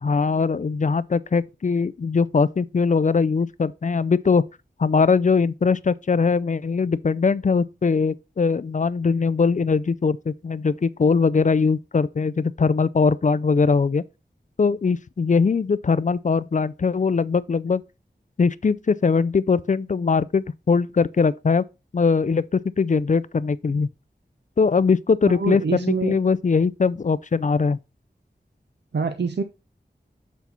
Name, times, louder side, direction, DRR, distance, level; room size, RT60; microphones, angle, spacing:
voice 1, 0.0-4.4 4.8-14.0 14.6-17.8 18.4-21.6 21.9-23.9 24.6-27.8, left 5 dB, 45° left, 0.4 m, -21 dB
voice 2, 25.3-26.2 28.9-29.4, right 5 dB, 70° right, 0.6 m, -25 dB
8.2 x 4.1 x 4.2 m
wide cardioid pair, 45°, 18 cm